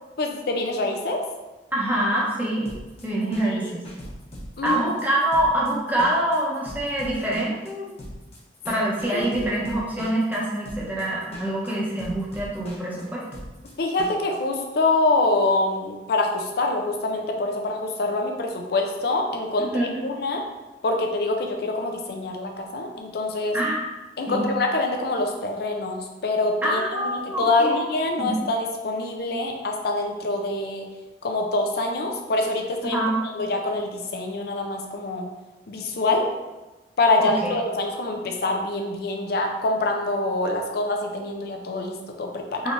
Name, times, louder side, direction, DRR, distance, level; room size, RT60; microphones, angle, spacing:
voice 1, 0.2-1.2 3.6-3.7 4.6-4.8 9.1-9.5 13.8-20.4 20.8-23.6 24.2-30.9 31.2-35.3 35.7-36.3 37.0-42.7, left 2 dB, 60° left, 3 dB, 0.5 m, -25 dB
voice 2, 1.7-2.7 3.0-3.8 4.6-7.9 8.7-13.2 19.6-20.0 23.5-23.8 24.3-24.5 26.6-27.8 28.2-28.3 32.8-33.2 37.2-37.6 42.6-42.7, right 1 dB, 10° right, -5 dB, 0.8 m, -25 dB
sound 1, 2.7-14.4, equal, 35° left, 0.9 m, -39 dB
3.7 x 3.2 x 2.5 m, 1.1 s
head